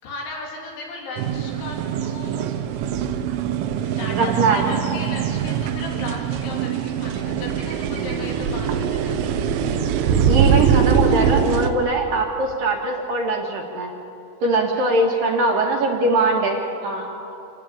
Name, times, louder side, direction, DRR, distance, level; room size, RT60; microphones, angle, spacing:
voice 1, 0.0-2.8 4.0-9.2 14.5-17.3, left 2 dB, 75° left, -2 dB, 5.7 m, -37 dB
sound 1, 1.2-11.7, right 7 dB, 90° right, 3.5 m, -22 dB
voice 2, 4.1-4.7 10.3-13.9 14.4-17.0, right 2 dB, 60° right, 1 dB, 2.9 m, -21 dB
27.0 x 17.5 x 8.8 m, 2.8 s
omnidirectional pair, 5.4 m